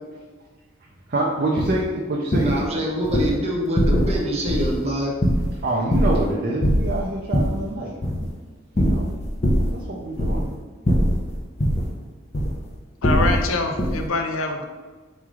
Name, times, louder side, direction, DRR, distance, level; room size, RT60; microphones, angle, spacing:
voice 1, 1.1-2.6 5.6-8.0 8.8-9.1 9.7-10.4, right 2 dB, 50° right, -2 dB, 0.5 m, -26 dB
sound 1, 1.6-1.8 2.3-2.6 3.0-3.3 3.8-4.2 4.5-4.8 5.2-6.3 6.6-7.6 8.0-8.3 8.8-9.8 10.1-10.6 10.8-11.9 12.3-12.6 13.0-13.5 13.8-14.1, equal, 35° left, 0.6 m, -21 dB
voice 2, 2.4-5.1, equal, 30° right, -3 dB, 1.0 m, -25 dB
voice 3, 13.0-14.6, left 3 dB, 90° left, 4 dB, 0.5 m, -24 dB
3.6 x 3.1 x 4.8 m, 1.3 s
head